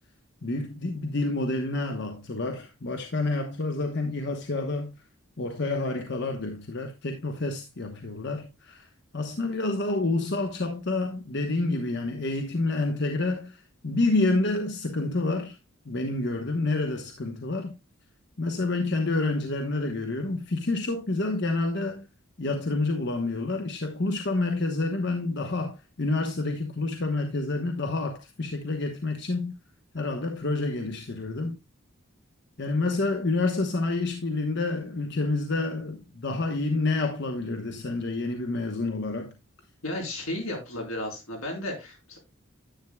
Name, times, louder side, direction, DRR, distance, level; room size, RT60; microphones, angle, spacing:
voice 1, 0.4-4.9 5.4-8.9 9.1-15.6 15.8-17.7 18.4-22.0 22.4-29.5 29.9-31.6 32.6-39.3, left 2 dB, 55° left, 1.0 m, -28 dB
voice 2, 39.8-42.2, left 1 dB, 85° left, 4.4 m, -33 dB
10.5 x 9.2 x 2.3 m
head